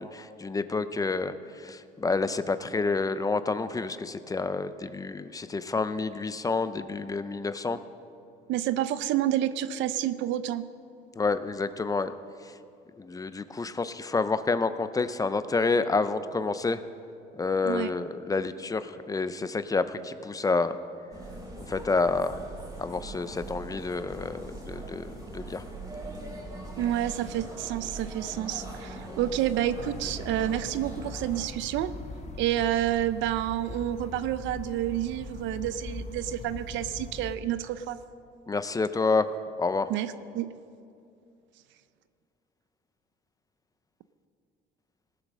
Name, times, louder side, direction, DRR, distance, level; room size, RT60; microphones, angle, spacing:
voice 1, 0.0-7.8 11.2-12.1 12.4-12.5 13.0-16.8 17.3-20.8 21.6-22.4 22.8-25.7 38.5-39.3 39.6-39.9, left 3 dB, 20° left, 12 dB, 0.5 m, -29 dB
voice 2, 8.5-10.6 17.6-17.9 26.8-31.9 32.4-38.0 39.9-40.5, right 12 dB, 80° right, 13 dB, 0.6 m, -29 dB
sound 1, 21.1-31.5, right 2 dB, 20° right, 3.7 m, -41 dB
sound 2, 29.7-37.4, left 3 dB, 35° left, 1.1 m, -41 dB
18.5 x 7.6 x 6.2 m, 2.5 s
cardioid pair, 115°, 19 cm